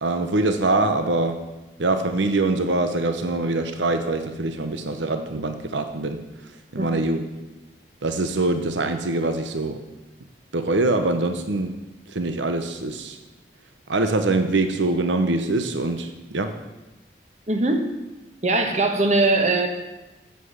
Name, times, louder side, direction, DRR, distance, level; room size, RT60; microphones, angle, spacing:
voice 1, 0.0-1.4 1.8-6.2 6.7-7.2 8.0-9.8 10.5-11.8 12.1-13.2 13.9-16.5, right 2 dB, 85° right, 7 dB, 0.9 m, -23 dB
voice 2, 17.5-17.9 18.4-19.7, right 2 dB, 40° right, 5 dB, 1.2 m, -20 dB
8.2 x 8.0 x 8.0 m, 1.1 s
head